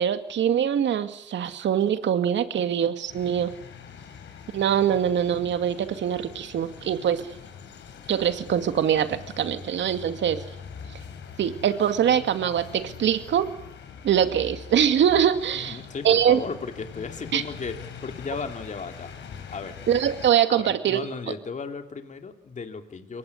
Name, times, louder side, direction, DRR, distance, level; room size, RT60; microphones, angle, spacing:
voice 1, 0.0-3.5 4.5-7.2 8.1-10.4 11.4-13.5 14.0-15.8 16.0-16.4 17.3-17.4 19.9-21.0, right 9 dB, 65° right, 9 dB, 2.3 m, -23 dB
sound 1, 3.1-20.3, left 7 dB, 65° left, 4.2 m, -43 dB
voice 2, 15.5-17.7 18.0-19.1 19.5-19.8 20.5-23.2, left 5 dB, 40° left, 6 dB, 2.9 m, -35 dB
23.5 x 19.0 x 9.7 m, 0.79 s
cardioid pair, 90°, 20 cm